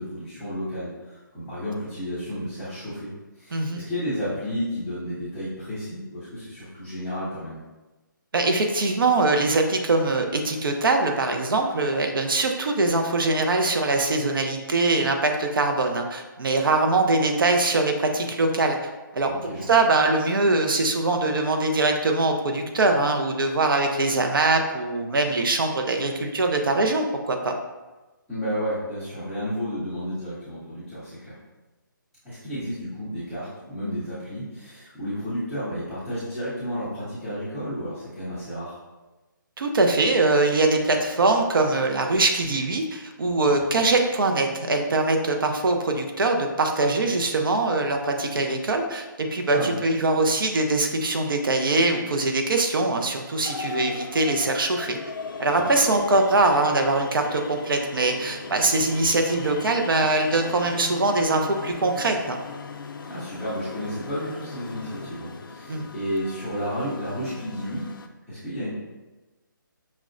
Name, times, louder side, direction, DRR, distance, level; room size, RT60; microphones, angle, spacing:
voice 1, 0.0-7.6 19.2-19.8 28.3-31.3 32.2-38.8 43.7-43.9 49.5-49.7 55.5-55.6 63.0-67.8 68.3-68.7, equal, ahead, -20 dB, 0.3 m, -32 dB
voice 2, 8.3-18.8 19.1-19.3 19.7-27.5 39.6-55.0 55.4-62.4 65.7-65.9, right 2 dB, 80° right, 4 dB, 0.5 m, -22 dB
sound 1, 53.4-68.1, left 4 dB, 80° left, 0.4 m, -38 dB
5.8 x 2.1 x 2.4 m, 1.1 s
hypercardioid pair, 170°, 11 cm